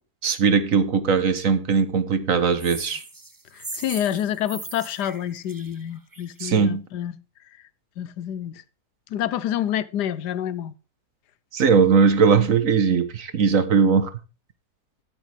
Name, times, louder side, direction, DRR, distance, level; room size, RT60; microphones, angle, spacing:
voice 1, 0.2-3.0 6.4-6.8 11.5-14.1, right 5 dB, 55° right, 1.4 m, -19 dB
sound 1, 2.6-6.4, right 2 dB, 15° right, 0.7 m, -39 dB
voice 2, 3.5-7.1 8.0-8.6 9.1-10.7, left 11 dB, 85° left, 1.3 m, -28 dB
13.5 x 8.3 x 3.4 m
omnidirectional pair, 1.7 m